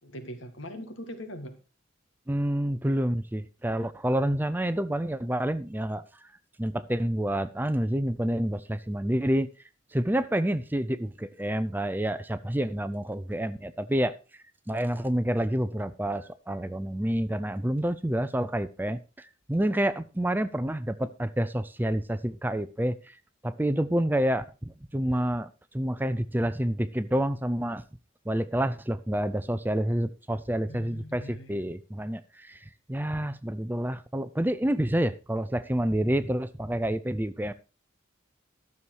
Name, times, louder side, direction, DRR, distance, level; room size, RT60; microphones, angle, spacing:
voice 1, 0.0-1.6 30.7-31.7, equal, 80° left, 7 dB, 2.1 m, -42 dB
voice 2, 2.3-6.3 6.6-9.5 9.9-14.1 14.7-23.2 23.4-27.8 28.3-37.5, right 1 dB, 10° right, 13 dB, 0.5 m, -28 dB
12.5 x 7.1 x 4.7 m, 0.32 s
head